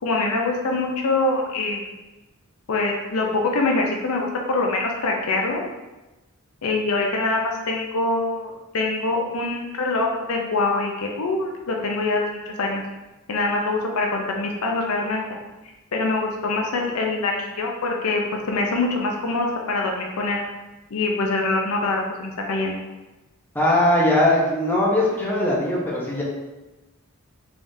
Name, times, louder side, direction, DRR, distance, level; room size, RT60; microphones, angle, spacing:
voice 1, 0.0-1.8 2.7-3.3 3.5-5.6 6.6-12.8 13.3-15.2 15.9-18.2 18.5-20.4 20.9-22.8, left 2 dB, 70° left, 1 dB, 0.5 m, -24 dB
voice 2, 23.5-26.2, left 1 dB, 10° left, -5 dB, 0.7 m, -20 dB
3.5 x 3.4 x 2.6 m, 1.1 s
head